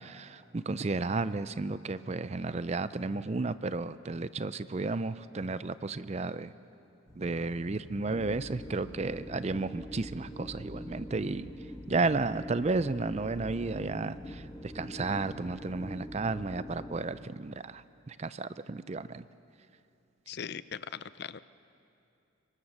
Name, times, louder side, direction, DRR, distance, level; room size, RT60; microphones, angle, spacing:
voice 1, 0.0-6.5 7.2-11.5 11.9-19.3, right 3 dB, 30° right, 15 dB, 0.4 m, -33 dB
sound 1, 7.0-16.1, equal, 15° right, 4.1 m, -52 dB
sound 2, 8.1-17.0, equal, 10° left, 1.6 m, -44 dB
voice 2, 20.3-21.4, left 7 dB, 50° left, 16 dB, 0.5 m, -40 dB
25.0 x 23.5 x 6.6 m, 2.6 s
head